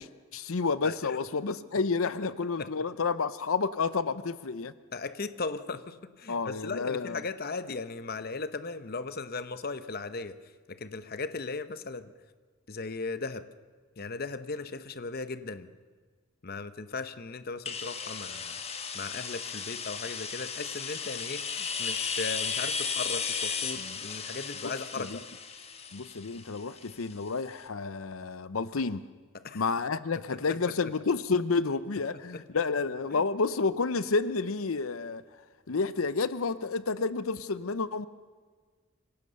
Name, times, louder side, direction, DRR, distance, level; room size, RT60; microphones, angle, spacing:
voice 1, 0.0-4.7 6.3-7.2 23.8-24.0 24.6-25.2 25.9-29.0 29.5-35.2 35.7-38.1, left 4 dB, 85° left, 15 dB, 0.7 m, -30 dB
voice 2, 0.8-1.2 2.6-2.7 4.9-10.4 10.7-12.1 12.7-13.5 14.0-15.7 16.4-18.6 18.9-25.2 29.3-29.6 33.1-33.2, left 4 dB, 50° left, 12 dB, 0.9 m, -37 dB
sound 1, 17.6-27.3, left 6 dB, 30° left, 1.4 m, -35 dB
25.5 x 17.5 x 6.9 m, 1.5 s
head